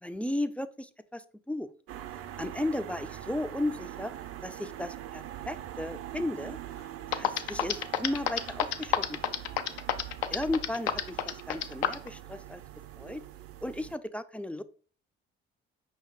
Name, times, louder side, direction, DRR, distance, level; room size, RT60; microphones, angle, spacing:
voice 1, 0.0-1.7 2.4-4.1 4.4-6.6 7.1-9.3 10.3-11.2 11.5-12.6 13.0-13.2 13.6-14.6, left 1 dB, 5° left, 12 dB, 0.3 m, -35 dB
sound 1, 1.9-14.0, right 12 dB, 50° right, 0.5 m, -43 dB
sound 2, 6.8-6.9 7.1-12.1, left 11 dB, 85° left, 0.5 m, -28 dB
5.2 x 2.7 x 3.7 m, 0.41 s
hypercardioid pair, 55°, 30 cm